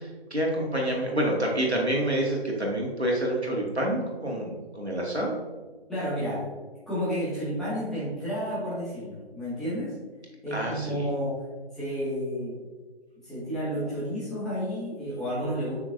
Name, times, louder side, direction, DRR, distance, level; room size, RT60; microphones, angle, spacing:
voice 1, 0.0-5.3 10.5-11.1, right 1 dB, 90° right, -2 dB, 2.1 m, -28 dB
voice 2, 5.9-6.4 6.9-9.9 10.4-11.4 11.7-12.6 13.2-15.7, equal, ahead, -12 dB, 2.0 m, -31 dB
7.4 x 5.9 x 2.7 m, 1.4 s
figure-of-eight pair, 140°, 32 cm